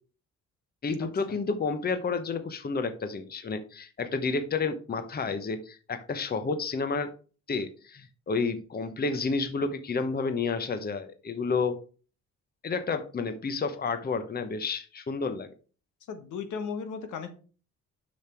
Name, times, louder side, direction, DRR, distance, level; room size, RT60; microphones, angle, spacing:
voice 1, 0.8-7.1 7.5-11.8 12.6-15.5, left 4 dB, 30° left, 10 dB, 0.9 m, -30 dB
voice 2, 16.1-17.3, left 6 dB, 80° left, 7 dB, 1.5 m, -35 dB
7.2 x 6.0 x 4.5 m, 0.38 s
cardioid pair, 90°, 30 cm